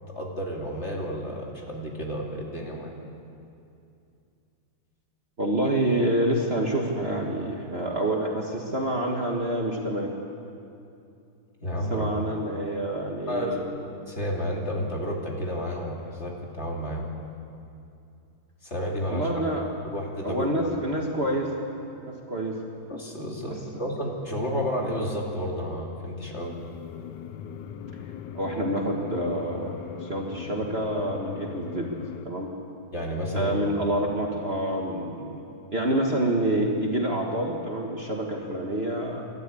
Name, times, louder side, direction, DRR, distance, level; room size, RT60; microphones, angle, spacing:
voice 1, 0.1-2.9 11.6-12.1 13.3-17.1 18.6-19.3 19.9-20.5 22.9-23.5 23.8-26.5 32.9-33.5, equal, 35° left, -1 dB, 2.9 m, -31 dB
voice 2, 5.4-10.1 11.9-13.6 19.1-19.6 20.2-21.5 21.9-22.6 28.3-31.9 32.2-32.5 33.3-35.4 35.7-39.3, right 1 dB, 35° right, 0 dB, 1.7 m, -27 dB
sound 1, 26.3-32.2, left 8 dB, 65° left, 1.3 m, -39 dB
27.5 x 12.5 x 8.5 m, 2.6 s
omnidirectional pair, 2.2 m